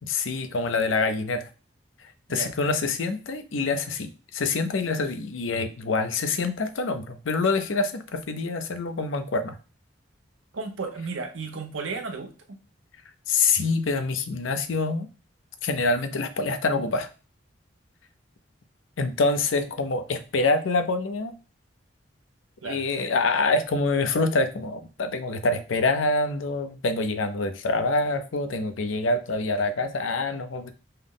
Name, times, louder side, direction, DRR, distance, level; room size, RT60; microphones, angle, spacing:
voice 1, 0.0-1.5 2.3-9.6 13.3-15.1 15.6-17.1 19.0-21.3 22.6-30.7, left 3 dB, 85° left, 9 dB, 0.6 m, -26 dB
voice 2, 10.5-12.6 22.6-22.8, right 4 dB, 85° right, 5 dB, 0.8 m, -34 dB
5.4 x 2.1 x 3.7 m, 0.34 s
head